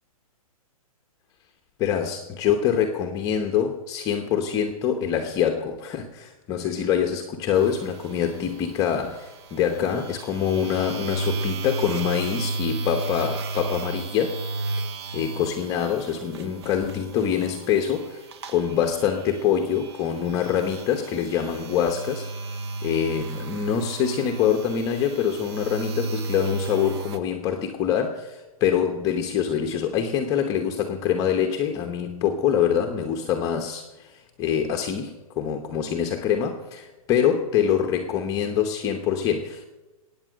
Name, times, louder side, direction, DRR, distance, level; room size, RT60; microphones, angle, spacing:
voice 1, 1.8-14.4 15.1-22.3 22.8-39.7, left 8 dB, 20° left, 4 dB, 0.9 m, -25 dB
sound 1, 7.5-27.2, right 3 dB, 45° right, 1.1 m, -34 dB
21.0 x 8.9 x 6.4 m, 1.1 s
hypercardioid pair, 155°, 19 cm